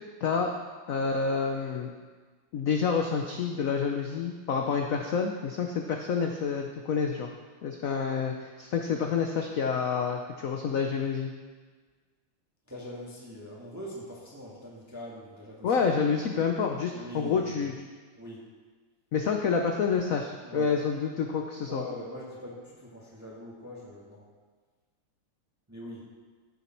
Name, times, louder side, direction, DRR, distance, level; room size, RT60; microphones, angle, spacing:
voice 1, 0.2-0.5 0.9-1.9 2.5-7.3 7.6-11.3 15.6-17.7 19.1-21.8, left 6 dB, 65° left, 3 dB, 0.8 m, -28 dB
voice 2, 12.7-15.8 16.9-17.6 18.2-18.5 20.4-20.7 21.7-24.2 25.7-26.1, left 1 dB, 10° right, -5 dB, 1.7 m, -42 dB
15.0 x 7.1 x 4.5 m, 1.5 s
omnidirectional pair, 2.3 m